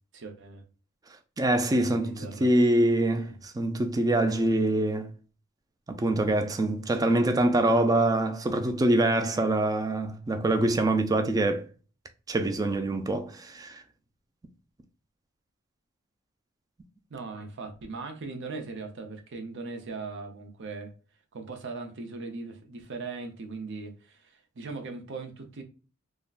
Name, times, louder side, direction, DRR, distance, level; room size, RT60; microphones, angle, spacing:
voice 1, 0.1-0.6 1.8-2.5 3.3-3.4 17.1-20.9 21.3-25.6, right 3 dB, 60° right, 0.6 m, -39 dB
voice 2, 1.4-5.1 5.9-11.7 12.3-13.8, right 1 dB, 15° right, 0.3 m, -25 dB
3.6 x 2.1 x 2.4 m
head